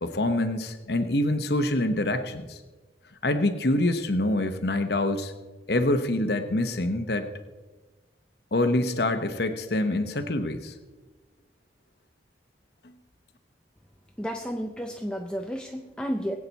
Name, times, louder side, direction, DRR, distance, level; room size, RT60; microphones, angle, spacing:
voice 1, 0.0-2.6 3.2-5.3 5.7-7.3 8.5-10.7, left 1 dB, 60° left, 8 dB, 1.0 m, -25 dB
voice 2, 14.2-16.4, equal, 5° left, 3 dB, 0.6 m, -32 dB
21.5 x 8.6 x 4.1 m, 1.2 s
head